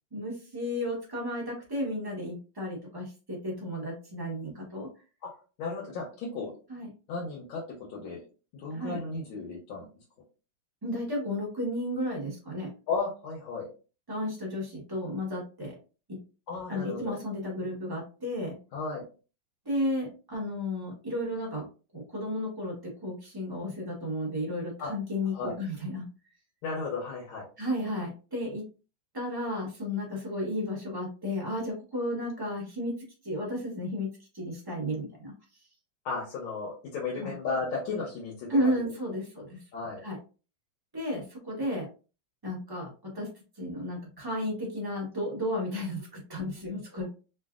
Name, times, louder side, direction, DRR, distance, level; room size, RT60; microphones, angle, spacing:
voice 1, 0.1-4.9 6.7-6.9 8.7-9.0 10.8-12.7 14.1-15.8 16.1-16.2 16.7-18.6 19.6-21.7 21.9-26.0 27.6-28.6 29.1-32.9 33.2-34.1 34.3-35.3 37.1-37.3 38.5-39.6 40.0-40.2 40.9-41.9 42.4-43.3 43.6-47.1, left 1 dB, 25° right, -3 dB, 0.4 m, -33 dB
voice 2, 5.6-6.5 7.1-7.6 7.9-8.2 8.5-9.9 12.9-13.7 16.5-17.1 18.7-19.0 24.8-24.9 25.3-25.6 26.6-27.5 36.0-38.7 39.7-40.0, left 4 dB, 85° left, -4 dB, 1.7 m, -34 dB
3.8 x 2.4 x 2.3 m, 0.34 s
omnidirectional pair, 2.2 m